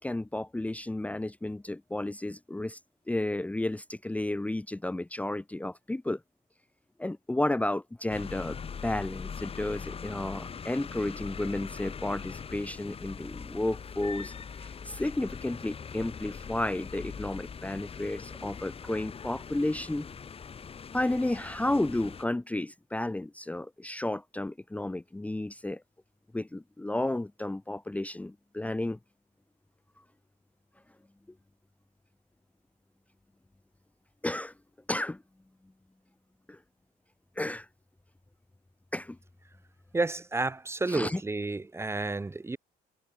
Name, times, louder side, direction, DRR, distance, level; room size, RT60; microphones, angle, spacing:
voice 1, 0.0-2.8 3.1-6.2 7.0-8.6 8.8-20.1 20.9-25.8 26.3-29.0 34.2-34.5 34.9-35.2 36.5-36.6 37.4-37.7 38.9-39.2 40.9-41.2, left 1 dB, 10° left, 1.0 m, -32 dB
sound 1, 8.1-22.2, left 6 dB, 35° left, 2.7 m, -42 dB
voice 2, 39.9-42.6, right 3 dB, 15° right, 1.2 m, -31 dB
cardioid pair, 110°, 17 cm